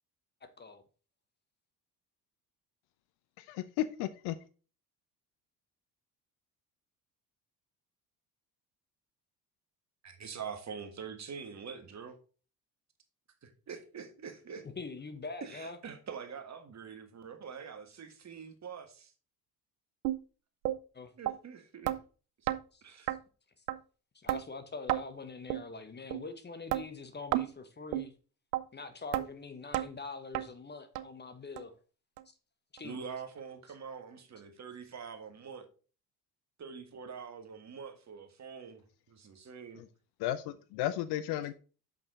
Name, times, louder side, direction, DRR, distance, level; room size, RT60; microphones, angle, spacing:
voice 1, 3.4-4.4 39.8-39.9 40.2-41.5, left 13 dB, 55° left, 0.6 m, -34 dB
voice 2, 10.0-12.2 13.4-14.6 15.4-19.1 21.2-22.0 22.4-22.5 22.8-23.1 32.8-35.7 36.6-38.8 39.1-39.8, right 6 dB, 35° right, 1.6 m, -45 dB
voice 3, 14.6-15.8 20.9-21.1 22.7-23.2 24.1-28.1 28.7-31.8 32.8-33.0, left 4 dB, 20° left, 1.0 m, -44 dB
sound 1, 20.0-20.2 20.6-20.8 21.3-21.4 21.9-22.0 22.5-22.6 23.1-23.2 23.7-23.8 24.3-24.4 24.9-25.0 25.5-25.6 26.1-26.2 26.7-26.8 27.3-27.5 27.9-28.1 28.5-28.6 29.1-29.3 29.7-29.9 30.3-30.5 30.9-31.0 31.6-31.7 32.2-32.3 32.8-32.9, right 15 dB, 70° right, 0.6 m, -31 dB
6.4 x 5.8 x 3.9 m
figure-of-eight pair, 55°, 49 cm